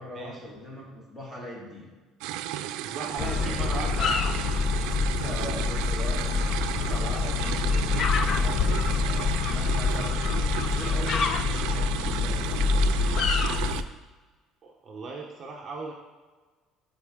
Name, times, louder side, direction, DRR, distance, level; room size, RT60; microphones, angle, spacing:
voice 1, 0.0-2.0 3.0-4.0 5.2-12.9, equal, 15° left, -3 dB, 1.9 m, -40 dB
sound 1, 2.2-13.8, right 12 dB, 85° right, 0.4 m, -34 dB
voice 2, 2.8-4.2 14.6-15.9, right 3 dB, 25° right, -1 dB, 0.8 m, -37 dB
sound 2, 3.2-13.8, left 5 dB, 40° left, 0.5 m, -26 dB
12.5 x 4.4 x 3.6 m, 1.3 s
cardioid pair, 165°, 0 cm